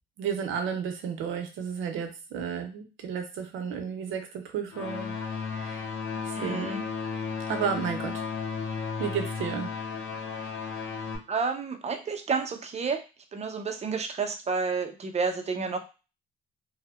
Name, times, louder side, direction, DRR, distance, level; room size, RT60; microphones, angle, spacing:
voice 1, 0.2-5.2 5.5-5.9 6.2-6.8 7.5-8.1 9.0-9.7 10.4-10.5, right 7 dB, 80° right, 6 dB, 0.6 m, -32 dB
sound 1, 4.7-11.2, left 5 dB, 80° left, 0.6 m, -34 dB
voice 2, 6.4-6.9 11.3-13.0 13.3-15.8, right 4 dB, 35° right, 6 dB, 0.5 m, -30 dB
2.6 x 2.0 x 2.3 m, 0.31 s
cardioid pair, 90°, 20 cm